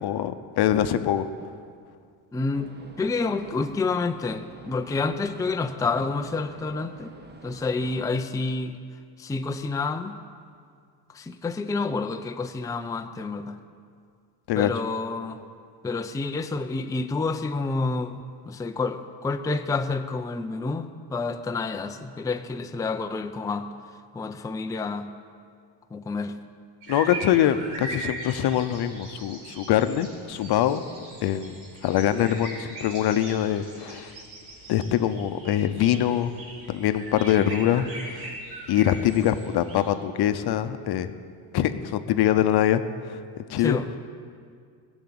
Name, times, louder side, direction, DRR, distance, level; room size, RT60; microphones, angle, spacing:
voice 1, 0.0-1.3 14.5-14.7 26.9-30.8 31.2-34.1 34.7-36.3 36.7-38.3 38.7-41.1 41.5-43.2 43.5-43.8, left 11 dB, 60° left, 10 dB, 0.8 m, -24 dB
voice 2, 2.3-2.7 3.0-7.1 7.4-8.8 9.2-10.2 11.1-13.6 14.6-15.4 15.8-23.7 24.1-25.1 25.9-26.4 43.6-44.0, left 3 dB, 10° left, 6 dB, 0.5 m, -29 dB
sound 1, 2.5-8.1, right 2 dB, 25° right, 1.1 m, -47 dB
sound 2, 26.8-39.9, right 2 dB, 85° right, 4.5 m, -40 dB
15.5 x 7.2 x 8.7 m, 2.2 s
cardioid pair, 100°, 44 cm